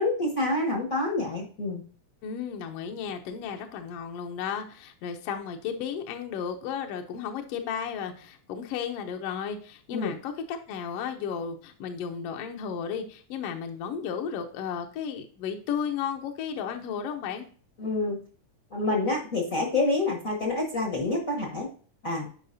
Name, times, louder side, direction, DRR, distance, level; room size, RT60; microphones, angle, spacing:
voice 1, 0.0-1.8 9.9-10.1 17.8-18.2 18.7-21.7 22.0-22.3, left 2 dB, 55° left, 0 dB, 0.9 m, -27 dB
voice 2, 2.2-17.4, left 7 dB, 75° left, 4 dB, 1.5 m, -34 dB
10.5 x 5.0 x 2.6 m, 0.42 s
omnidirectional pair, 3.5 m